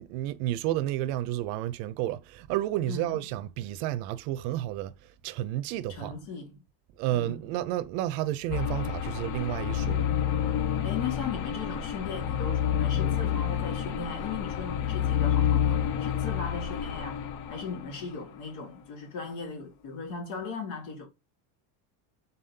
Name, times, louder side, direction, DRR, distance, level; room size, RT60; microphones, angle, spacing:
voice 1, 0.0-6.2 7.0-10.1, right 14 dB, 70° right, 0.6 m, -31 dB
voice 2, 2.9-3.2 5.9-6.6 7.1-7.4 10.8-21.1, left 5 dB, 65° left, 2.0 m, -38 dB
sound 1, 8.5-18.1, left 9 dB, 40° left, 0.4 m, -29 dB
4.0 x 3.7 x 2.7 m
cardioid pair, 165°, 49 cm